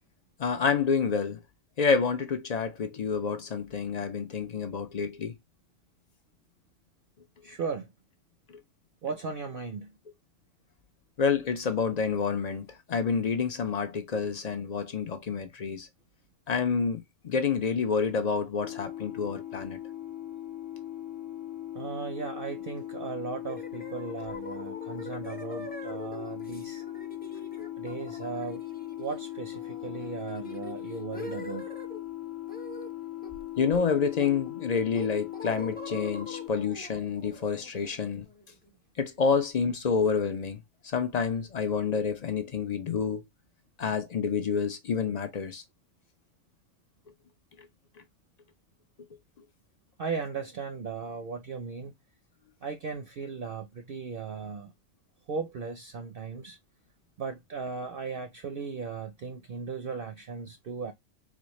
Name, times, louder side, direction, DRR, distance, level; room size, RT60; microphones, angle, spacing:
voice 1, 0.4-1.4 1.8-5.3 8.5-8.6 11.2-15.9 16.5-19.8 27.6-27.7 33.6-38.3 39.0-40.6 40.9-43.2 43.8-45.6, left 6 dB, 50° left, 0.5 m, -28 dB
voice 2, 7.4-7.9 9.0-9.9 21.7-26.8 27.8-28.6 29.0-31.6 50.0-51.9 52.6-54.7 55.3-56.6 57.2-60.9, right 5 dB, 55° right, 0.7 m, -37 dB
sound 1, 18.6-36.5, left 14 dB, 80° left, 0.9 m, -39 dB
sound 2, 23.5-32.0 32.5-32.9 33.2-34.5 34.9-38.7, left 1 dB, 10° left, 0.7 m, -45 dB
4.1 x 2.4 x 3.0 m
omnidirectional pair, 1.3 m